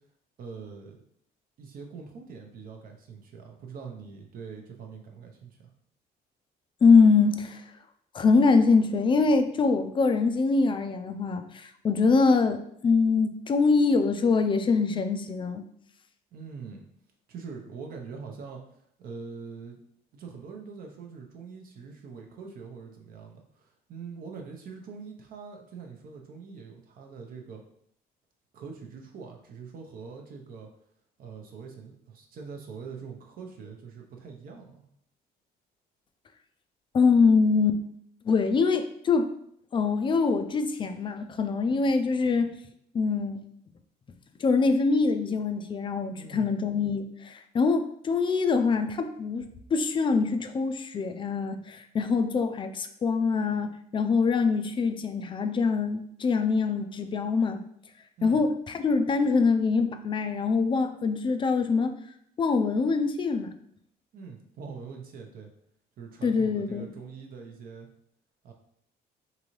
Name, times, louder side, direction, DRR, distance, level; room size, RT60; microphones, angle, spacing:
voice 1, 0.4-1.0 1.6-5.7 16.3-16.9 17.3-18.6 19.0-19.8 20.1-27.6 28.5-30.7 31.2-34.8 46.2-46.5 58.2-58.4 64.1-65.5 66.0-67.9 68.4-68.5, right 5 dB, 60° right, 2 dB, 0.7 m, -43 dB
voice 2, 6.8-7.7 8.1-15.6 36.9-37.8 38.2-39.3 39.7-42.5 42.9-43.4 44.4-57.6 58.2-61.9 62.4-63.5 66.2-66.9, left 4 dB, 30° left, 8 dB, 0.4 m, -24 dB
3.8 x 2.7 x 3.0 m, 0.68 s
cardioid pair, 110°, 17 cm